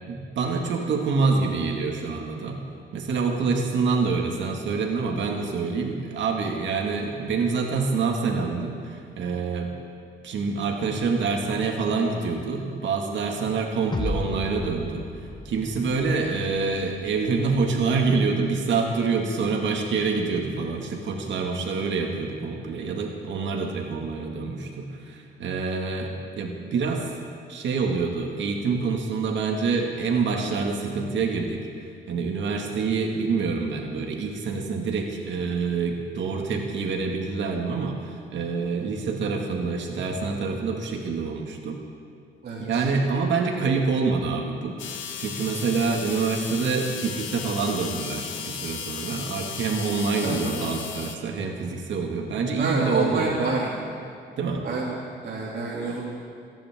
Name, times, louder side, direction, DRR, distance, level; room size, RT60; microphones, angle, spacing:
voice 1, 0.1-2.6 2.9-9.7 10.2-15.1 15.5-27.1 27.5-31.6 32.1-41.8 42.6-44.8 45.2-53.5 54.4-54.7, right 4 dB, 70° right, 1 dB, 2.0 m, -26 dB
sound 1, 13.9-17.2, left 2 dB, 20° left, 1.0 m, -34 dB
voice 2, 42.4-42.8 50.2-50.6 52.6-53.7 54.6-56.0, right 3 dB, 50° right, -7 dB, 2.9 m, -28 dB
sound 2, 44.8-51.2, left 7 dB, 75° left, 1.2 m, -35 dB
28.5 x 10.5 x 3.7 m, 2.5 s
cardioid pair, 90°, 20 cm